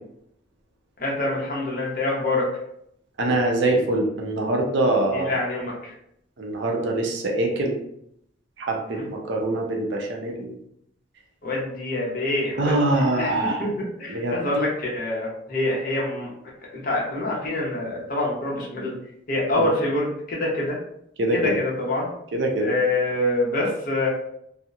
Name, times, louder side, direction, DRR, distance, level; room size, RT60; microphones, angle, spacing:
voice 1, 1.0-2.5 5.1-5.9 8.9-9.0 11.4-16.3 16.7-18.9 19.3-20.8 21.3-22.1 22.6-24.1, left 2 dB, 45° left, -4 dB, 0.7 m, -26 dB
voice 2, 3.2-5.3 6.4-7.8 8.6-10.5 12.6-13.7 14.1-14.4 19.6-19.7 21.2-21.6 22.3-22.7, right 2 dB, 65° right, 0 dB, 0.5 m, -24 dB
2.8 x 2.0 x 2.3 m, 0.73 s
head